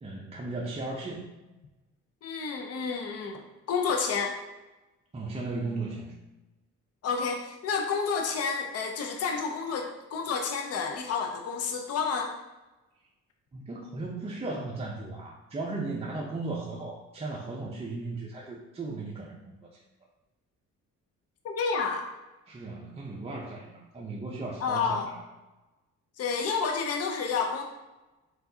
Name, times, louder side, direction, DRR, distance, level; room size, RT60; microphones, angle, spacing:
voice 1, 0.0-1.3 5.1-6.1 13.5-19.6 22.5-25.2, right 3 dB, 20° right, -3 dB, 0.6 m, -36 dB
voice 2, 2.2-3.4 3.7-4.3 7.0-12.3 21.4-22.1 24.6-25.1 26.2-27.6, left 5 dB, 55° left, 3 dB, 0.6 m, -30 dB
4.6 x 3.9 x 2.7 m, 1.1 s
cardioid pair, 90°, 30 cm